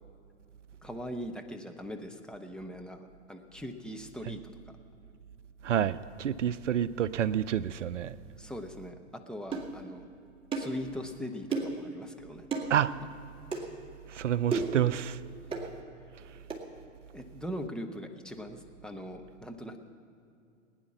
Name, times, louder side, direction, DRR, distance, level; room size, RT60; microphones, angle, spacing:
voice 1, 0.8-4.4 8.4-8.9 9.3-10.0 10.5-12.5 17.1-19.8, equal, ahead, 0.7 m, -40 dB
voice 2, 5.6-8.2 12.7-13.0 14.1-15.2 16.3-16.4, right 10 dB, 75° right, 0.5 m, -29 dB
sound 1, 9.5-9.7 10.5-10.8 11.5-11.8 12.5-12.7 13.5-13.7 14.5-14.8 15.5-15.7 16.5-16.6, right 4 dB, 15° right, 2.1 m, -32 dB
19.5 x 9.8 x 5.9 m
figure-of-eight pair, 95°, 37 cm